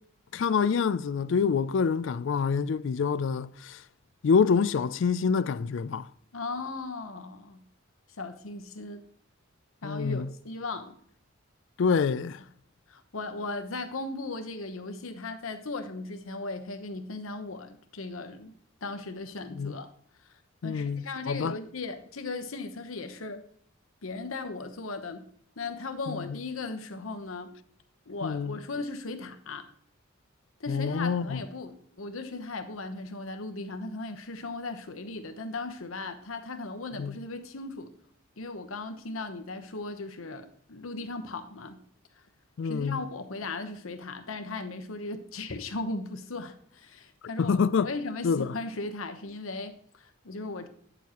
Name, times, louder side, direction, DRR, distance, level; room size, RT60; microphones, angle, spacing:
voice 1, 0.3-3.8 4.2-6.1 9.8-10.3 11.8-12.4 19.5-19.8 20.6-21.6 26.1-26.2 28.2-28.5 30.7-31.4 37.0-37.1 42.6-43.0 47.4-47.9 48.2-48.5, left 5 dB, 60° left, 0.4 m, -26 dB
voice 2, 6.3-7.6 8.2-9.0 9.8-11.0 12.9-18.5 18.8-19.9 20.2-20.3 20.6-23.4 24.0-25.3 25.6-27.6 28.1-29.7 30.6-37.9 38.4-41.8 42.6-47.6 47.8-50.7, left 3 dB, 75° left, 1.0 m, -37 dB
9.9 x 7.0 x 3.0 m
head